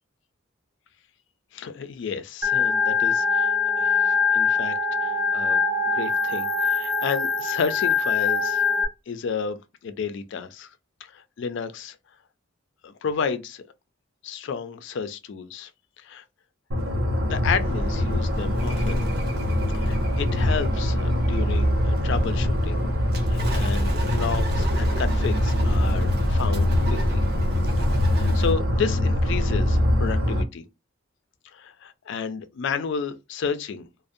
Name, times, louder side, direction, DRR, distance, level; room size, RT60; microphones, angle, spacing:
voice 1, 1.5-8.6 9.1-10.7 11.0-12.0 12.8-13.6 14.2-15.7 16.0-16.2 17.3-19.1 19.7-22.8 23.3-27.2 27.9-30.7 31.5-33.9, left 6 dB, 60° left, 0.3 m, -32 dB
Organ, 2.4-8.9, left 5 dB, 10° right, 0.4 m, -23 dB
sound 1, 16.7-30.4, left 1 dB, 80° right, 0.6 m, -24 dB
Bird, 17.5-28.5, right 1 dB, 55° right, 0.8 m, -30 dB
2.5 x 2.0 x 2.5 m
head